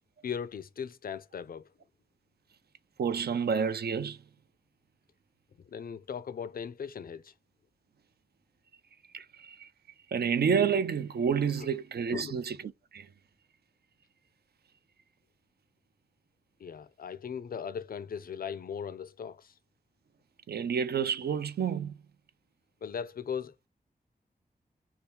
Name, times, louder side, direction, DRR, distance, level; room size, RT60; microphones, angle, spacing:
voice 1, 0.2-1.7 5.6-7.3 11.6-11.7 12.1-12.4 16.6-19.5 22.8-23.5, left 7 dB, 60° left, 0.4 m, -38 dB
voice 2, 3.0-4.2 9.1-9.7 10.1-12.6 12.9-13.1 20.5-22.0, right 6 dB, 75° right, 0.5 m, -29 dB
2.8 x 2.3 x 3.4 m
wide cardioid pair, 65°, 17 cm